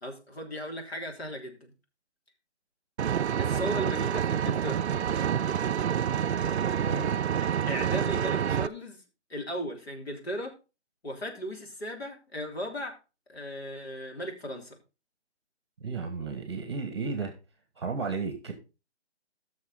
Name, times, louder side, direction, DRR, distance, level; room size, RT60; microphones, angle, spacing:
voice 1, 0.0-1.7 3.4-4.8 7.7-9.0 9.3-10.5 11.0-13.0 13.3-14.8, equal, 60° left, 2 dB, 3.4 m, -36 dB
Vehicle, 3.0-8.7, right 8 dB, 70° right, 0.5 m, -28 dB
voice 2, 15.8-17.3 17.8-18.5, right 4 dB, 25° right, 6 dB, 1.6 m, -33 dB
15.5 x 6.4 x 3.8 m, 0.29 s
hypercardioid pair, 180°, 34 cm